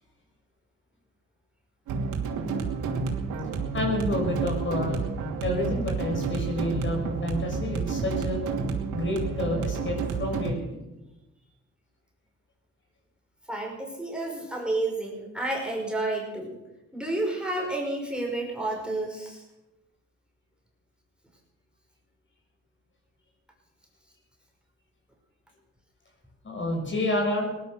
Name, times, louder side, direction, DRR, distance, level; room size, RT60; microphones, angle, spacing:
sound 1, 1.9-10.5, right 5 dB, 90° right, 2.8 m, -30 dB
voice 1, 3.7-5.0 5.4-8.4 8.9-10.8 26.4-27.5, left 1 dB, 40° left, 1 dB, 6.3 m, -29 dB
voice 2, 13.5-16.6 16.9-19.4, right 2 dB, 5° right, -1 dB, 5.4 m, -30 dB
18.5 x 11.5 x 6.7 m, 1.0 s
cardioid pair, 90°, 30 cm